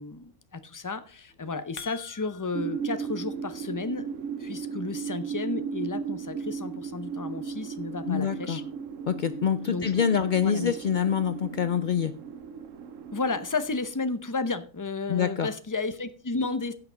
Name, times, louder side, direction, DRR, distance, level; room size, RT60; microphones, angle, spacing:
voice 1, 0.0-4.1 4.4-8.6 9.7-10.8 13.1-16.7, left 3 dB, 20° left, 11 dB, 0.6 m, -33 dB
sound 1, 1.3-2.8, left 8 dB, 55° left, 1.5 m, -45 dB
sound 2, 2.5-13.9, right 6 dB, 65° right, 1.2 m, -36 dB
voice 2, 8.1-8.6 9.1-12.1 15.1-15.5, left 7 dB, 70° left, 12 dB, 0.4 m, -26 dB
15.5 x 5.9 x 5.1 m, 0.40 s
omnidirectional pair, 1.5 m